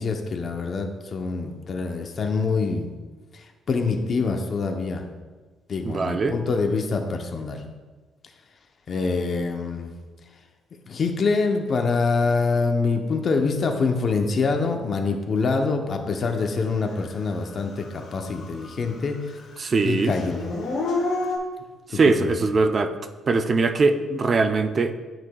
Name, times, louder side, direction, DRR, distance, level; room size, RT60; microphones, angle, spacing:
voice 1, 0.0-2.9 3.3-5.0 5.7-7.6 8.9-9.9 10.9-19.4 19.8-20.4 21.9-22.4, left 4 dB, 50° left, 4 dB, 0.8 m, -25 dB
voice 2, 5.8-6.4 19.6-20.1 21.9-22.9 23.3-25.0, right 3 dB, 40° right, 8 dB, 0.5 m, -21 dB
Dog / Siren, 17.0-17.1 17.6-19.0 19.3-21.4, left 3 dB, 75° left, 1.4 m, -29 dB
9.3 x 6.0 x 2.3 m, 1.3 s
cardioid pair, 90°, 0 cm